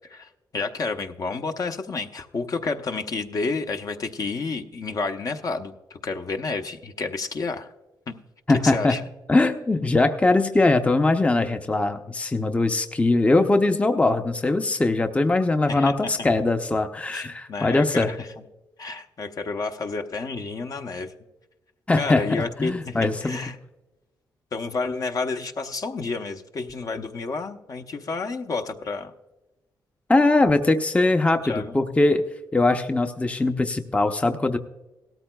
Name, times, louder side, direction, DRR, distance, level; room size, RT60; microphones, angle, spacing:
voice 1, 0.1-7.7 8.1-8.2 8.6-9.0 15.7-16.1 17.1-18.3 18.8-21.1 21.9-23.6 24.5-29.1 31.4-31.7, left 4 dB, 50° left, 5 dB, 0.8 m, -30 dB
voice 2, 8.5-9.0 9.3-18.1 21.9-23.4 30.1-32.2 32.5-34.6, left 2 dB, 15° left, 7 dB, 0.6 m, -21 dB
17.0 x 13.5 x 2.3 m, 1.0 s
cardioid pair, 95°, 8 cm